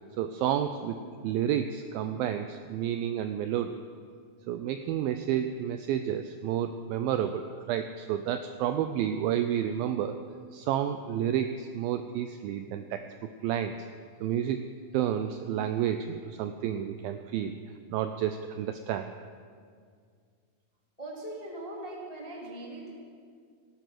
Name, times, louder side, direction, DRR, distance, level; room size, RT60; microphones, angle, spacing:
voice 1, 0.2-3.8 4.5-10.2 10.5-13.0 13.4-13.7 14.2-14.7 14.9-17.5 17.9-19.1, right 10 dB, 85° right, 8 dB, 2.1 m, -30 dB
voice 2, 21.0-22.9, right 1 dB, 20° left, -3 dB, 1.0 m, -40 dB
18.0 x 10.0 x 5.9 m, 2.1 s
omnidirectional pair, 4.7 m